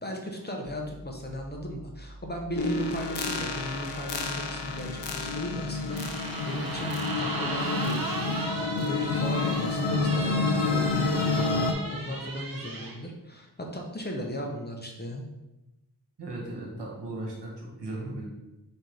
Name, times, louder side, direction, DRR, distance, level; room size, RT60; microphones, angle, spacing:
voice 1, 0.0-6.9 7.2-8.4 8.7-15.2, equal, 25° left, 1 dB, 0.7 m, -36 dB
sound 1, 0.6-6.0, right 1 dB, 15° right, 0.4 m, -47 dB
sound 2, 2.6-11.7, left 3 dB, 85° left, 0.6 m, -29 dB
sound 3, 5.9-13.0, right 2 dB, 55° right, 0.9 m, -36 dB
voice 2, 16.2-18.3, right 2 dB, 80° right, -2 dB, 1.3 m, -37 dB
4.3 x 3.7 x 3.2 m, 0.98 s
wide cardioid pair, 65°, 41 cm